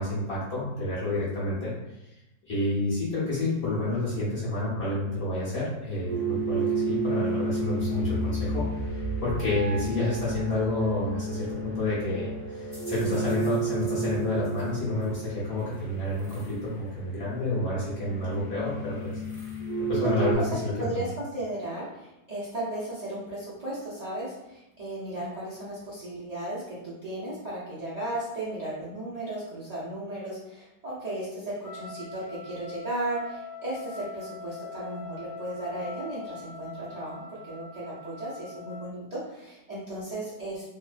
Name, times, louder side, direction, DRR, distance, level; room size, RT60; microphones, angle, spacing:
voice 1, 0.0-1.7 2.5-8.6 8.9-19.1 19.9-21.1, left 1 dB, 45° left, -9 dB, 1.1 m, -29 dB
sound 1, 6.1-20.4, right 2 dB, 20° left, 0.5 m, -32 dB
voice 2, 19.9-20.5 20.8-40.7, right 1 dB, 70° right, -11 dB, 0.3 m, -35 dB
Trumpet, 31.6-38.9, left 4 dB, 65° left, 1.2 m, -43 dB
3.0 x 2.1 x 2.4 m, 0.91 s
omnidirectional pair, 1.8 m